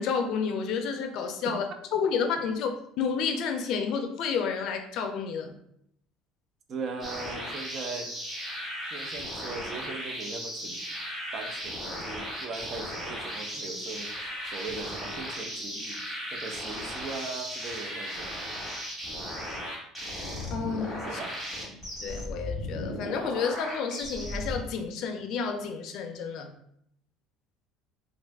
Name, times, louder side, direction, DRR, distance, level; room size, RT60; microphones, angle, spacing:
voice 1, 0.0-1.6 1.9-2.7 3.0-5.5 20.5-21.2 21.7-26.5, left 6 dB, 55° left, 5 dB, 0.4 m, -30 dB
voice 2, 6.7-8.1 8.9-10.8 11.3-18.3 21.0-21.3, right 4 dB, 40° right, 6 dB, 0.4 m, -39 dB
sound 1, 7.0-24.6, equal, 10° right, 1.2 m, -36 dB
2.4 x 2.3 x 3.4 m, 0.72 s
cardioid pair, 145°, 0 cm